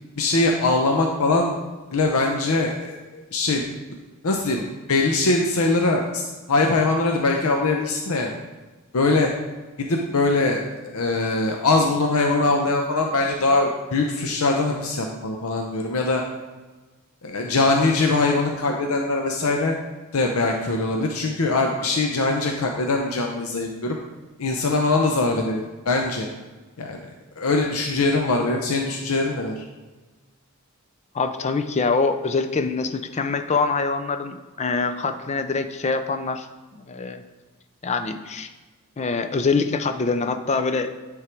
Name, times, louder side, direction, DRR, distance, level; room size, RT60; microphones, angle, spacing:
voice 1, 0.2-1.6 1.9-3.7 4.2-8.3 8.9-9.3 9.8-16.2 17.2-19.8 20.1-24.0 24.4-26.3 26.8-27.0 27.4-29.6, left 3 dB, 75° left, 2 dB, 0.7 m, -22 dB
voice 2, 31.1-36.5 36.9-37.2 37.8-38.5 39.0-40.9, left 4 dB, 30° left, 8 dB, 0.4 m, -24 dB
9.8 x 3.6 x 4.5 m, 1.3 s
head